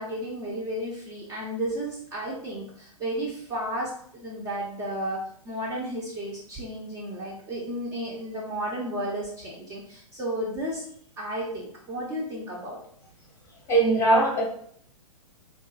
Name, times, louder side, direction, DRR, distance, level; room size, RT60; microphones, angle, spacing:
voice 1, 0.0-5.2 5.4-10.8 11.2-12.8, right 1 dB, 15° right, -4 dB, 0.6 m, -33 dB
voice 2, 13.7-14.4, right 2 dB, 15° left, -2 dB, 0.8 m, -20 dB
3.7 x 2.6 x 2.3 m, 0.63 s
figure-of-eight pair, 110°, 18 cm